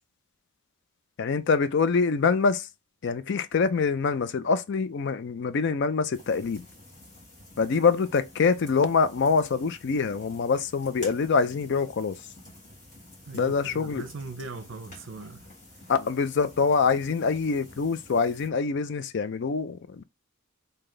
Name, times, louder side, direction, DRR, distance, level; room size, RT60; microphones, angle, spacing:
voice 1, 1.2-2.7 3.0-6.6 7.6-12.1 13.3-14.0 15.9-20.0, left 5 dB, 50° left, 0.4 m, -25 dB
sound 1, 6.1-18.5, left 1 dB, 35° left, 1.8 m, -50 dB
voice 2, 13.3-15.4, right 3 dB, 55° right, 0.6 m, -40 dB
3.2 x 2.8 x 3.8 m
head